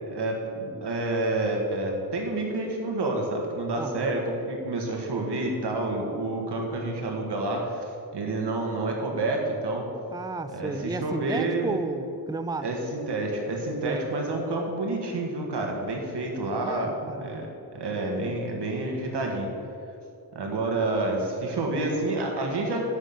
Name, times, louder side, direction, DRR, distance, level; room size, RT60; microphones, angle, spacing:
voice 1, 0.1-9.9 10.5-11.8 12.6-17.5 17.7-19.5 20.3-22.8, right 2 dB, 85° right, 1 dB, 1.9 m, -29 dB
voice 2, 3.8-4.2 10.1-12.7 13.7-14.0 16.6-17.3, right 3 dB, 10° right, 11 dB, 0.5 m, -33 dB
9.6 x 6.0 x 8.3 m, 2.6 s
wide cardioid pair, 85°, 40 cm